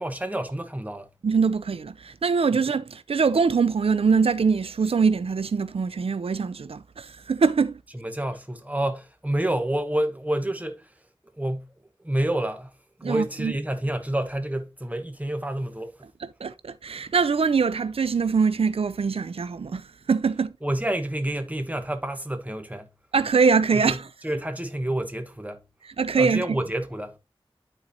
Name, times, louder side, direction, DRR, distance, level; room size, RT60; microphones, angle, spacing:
voice 1, 0.0-1.1 2.5-2.6 7.9-11.0 11.3-16.1 20.6-22.9 23.7-25.6 26.2-27.2, right 1 dB, 15° right, 1.2 m, -29 dB
voice 2, 1.2-7.8 13.0-13.5 16.4-20.5 23.1-24.0 26.0-26.4, right 5 dB, 90° right, 0.4 m, -23 dB
11.5 x 4.2 x 2.7 m
wide cardioid pair, 55°, 10 cm